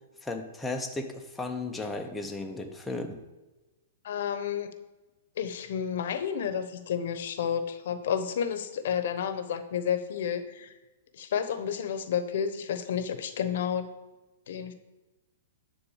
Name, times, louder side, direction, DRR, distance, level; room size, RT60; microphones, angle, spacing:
voice 1, 0.2-3.3, left 2 dB, 5° left, 2 dB, 0.6 m, -35 dB
voice 2, 4.0-4.7 5.4-10.7 11.1-13.9 14.5-14.7, left 8 dB, 60° left, 10 dB, 0.9 m, -31 dB
10.0 x 3.8 x 7.1 m, 1.1 s
hypercardioid pair, 160°, 0 cm